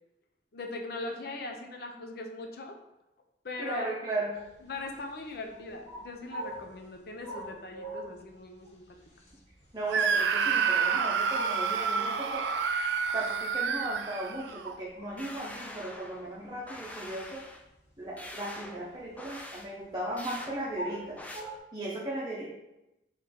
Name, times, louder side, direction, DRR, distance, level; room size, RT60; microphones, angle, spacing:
voice 1, 0.5-2.8 3.4-3.9 4.6-8.9, left 2 dB, 60° left, 3 dB, 0.6 m, -40 dB
voice 2, 3.6-4.3 9.7-12.5 13.1-17.4 18.0-21.2 21.7-22.4, right 1 dB, 25° right, -6 dB, 0.8 m, -36 dB
sound 1, 4.3-21.6, right 1 dB, 90° left, 1.2 m, -44 dB
Screaming, 9.9-14.8, right 6 dB, 75° right, 0.4 m, -28 dB
Meta Laser, 15.2-16.3 16.7-17.6 18.2-18.8 19.2-19.7 20.2-20.5 21.2-21.4, left 1 dB, 10° left, 0.4 m, -44 dB
3.9 x 3.2 x 4.2 m, 0.92 s
head